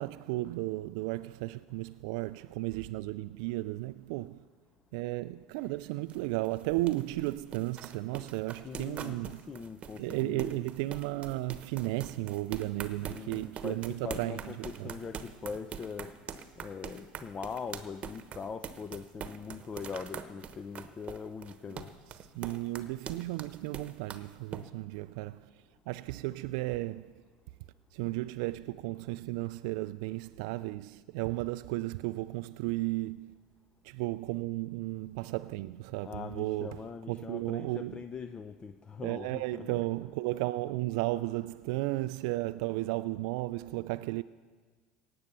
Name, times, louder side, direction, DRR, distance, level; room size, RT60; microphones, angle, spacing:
voice 1, 0.0-4.4 4.9-9.4 10.0-14.3 14.8-14.9 22.4-25.4 25.9-27.1 27.9-33.3 33.8-36.7 37.1-38.0 39.0-44.2, right 19 dB, 70° right, 0.3 m, -34 dB
sound 1, 5.6-24.6, right 7 dB, 35° right, 1.0 m, -44 dB
voice 2, 8.6-10.6 13.1-16.1 16.6-21.9 36.0-39.8, left 5 dB, 30° left, 0.6 m, -42 dB
17.5 x 7.9 x 6.8 m
hypercardioid pair, 85°, 3 cm